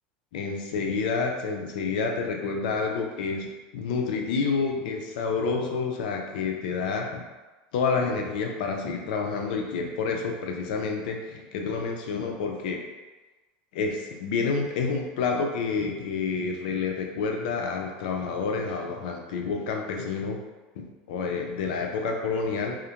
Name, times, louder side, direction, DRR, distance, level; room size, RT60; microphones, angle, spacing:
voice 1, 0.3-3.5 3.7-7.2 7.7-12.8 13.7-20.4 20.8-22.8, left 4 dB, 85° left, 2 dB, 0.4 m, -29 dB
2.4 x 2.1 x 2.8 m, 1.2 s
supercardioid pair, 150°, 5 cm